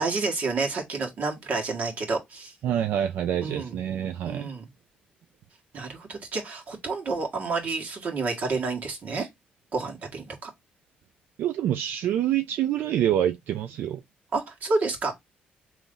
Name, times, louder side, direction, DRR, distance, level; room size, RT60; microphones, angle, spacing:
voice 1, 0.0-2.5 3.4-3.8 4.3-4.7 5.7-9.3 9.7-10.5 14.3-15.1, right 3 dB, 55° right, 1.6 m, -29 dB
voice 2, 2.6-4.5 11.4-14.0, right 11 dB, 80° right, 0.4 m, -26 dB
3.9 x 3.0 x 3.7 m
cardioid pair, 110°, 3 cm